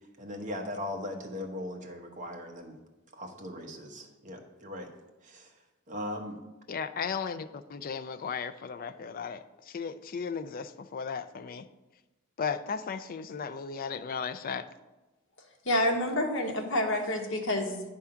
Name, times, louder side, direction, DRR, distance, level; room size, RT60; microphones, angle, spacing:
voice 1, 0.2-2.8 3.1-4.9 5.2-5.5 5.9-6.4, left 1 dB, 35° right, 3 dB, 1.0 m, -39 dB
voice 2, 6.7-11.6 12.4-14.6, left 6 dB, 45° left, 11 dB, 0.4 m, -35 dB
voice 3, 15.6-17.8, left 1 dB, 60° left, 2 dB, 1.2 m, -28 dB
9.8 x 3.6 x 5.7 m, 1.1 s
head